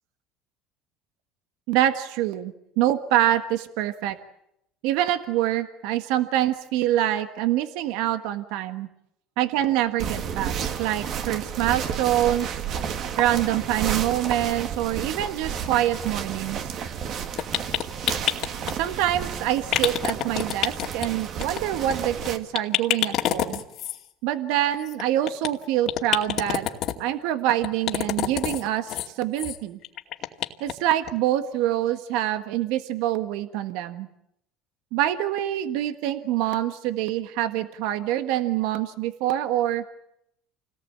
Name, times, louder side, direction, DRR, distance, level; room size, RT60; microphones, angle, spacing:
voice 1, 1.7-4.2 4.8-8.9 9.4-10.5 10.8-12.6 13.2-16.7 18.7-23.6 24.2-26.7 27.0-29.8 30.6-34.1 34.9-39.8, right 12 dB, 75° right, 9 dB, 1.5 m, -25 dB
sound 1, 10.0-22.4, right 7 dB, 50° right, 2.4 m, -31 dB
sound 2, 17.4-18.7 19.7-21.1 21.4-21.6 21.9-22.0 22.2-22.3 22.5-24.0 24.9-25.5 25.9-26.9 27.6-28.6 28.9-29.1 29.4-29.6 29.8-30.7 31.1-31.2 31.5-31.6, left 12 dB, 55° left, 2.4 m, -26 dB
28.5 x 18.5 x 8.8 m, 0.79 s
cardioid pair, 120°, 0 cm